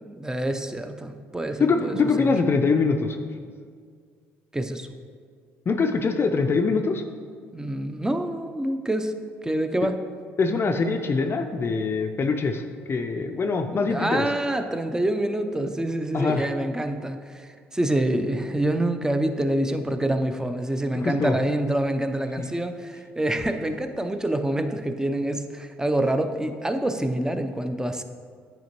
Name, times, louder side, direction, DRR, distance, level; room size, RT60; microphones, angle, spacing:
voice 1, 0.0-2.3 4.5-4.9 7.5-9.1 9.4-9.9 13.9-28.0, right 1 dB, 10° right, 8 dB, 0.5 m, -26 dB
voice 2, 1.6-3.2 5.7-7.0 10.4-14.3 16.1-16.4 21.0-21.4 22.4-22.5, left 4 dB, 40° left, 5 dB, 0.4 m, -23 dB
9.2 x 4.3 x 3.0 m, 2.1 s
hypercardioid pair, 60°, 6 cm